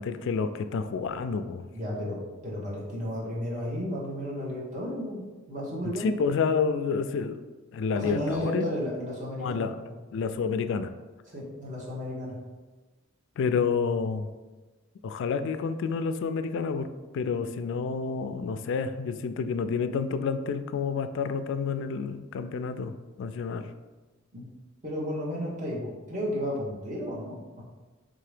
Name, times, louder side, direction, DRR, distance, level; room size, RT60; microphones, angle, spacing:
voice 1, 0.0-1.7 6.0-7.4 7.7-8.7 9.4-10.9 13.4-14.3 15.0-23.7, left 5 dB, 60° left, 10 dB, 0.3 m, -29 dB
voice 2, 1.7-5.2 5.5-6.1 7.9-9.6 11.3-12.4 24.3-24.5 24.8-27.6, equal, 40° right, -5 dB, 1.3 m, -33 dB
3.8 x 2.9 x 4.9 m, 1.2 s
head